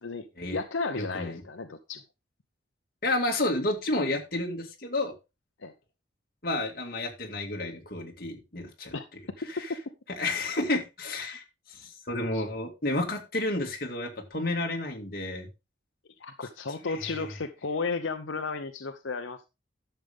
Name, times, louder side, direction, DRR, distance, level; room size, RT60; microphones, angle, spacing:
voice 1, 0.0-2.0 5.6-5.7 8.9-9.1 12.3-12.4 16.2-19.5, left 4 dB, 90° left, 0.8 m, -34 dB
voice 2, 1.0-1.4 3.0-5.1 6.4-8.9 9.5-9.7 10.2-15.5 16.8-17.3, left 2 dB, 50° left, 2.2 m, -31 dB
11.5 x 6.9 x 3.5 m
head